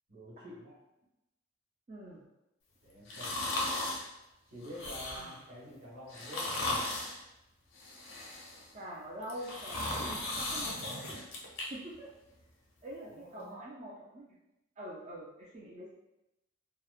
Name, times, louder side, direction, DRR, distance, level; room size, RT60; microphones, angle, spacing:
voice 1, 0.1-0.7 2.8-3.5 4.5-6.6 13.1-13.6, equal, 90° right, -7 dB, 1.3 m, -48 dB
voice 2, 1.9-2.2 5.2-5.4 8.7-11.2 11.6-12.1 12.8-14.4 14.8-15.9, equal, 35° right, -4 dB, 0.3 m, -45 dB
sound 1, 3.1-4.1 4.6-5.4 6.1-7.2 7.7-8.7 9.2-11.6 12.0-12.1, left 2 dB, 80° left, 0.6 m, -36 dB
2.9 x 2.0 x 2.3 m, 0.92 s
head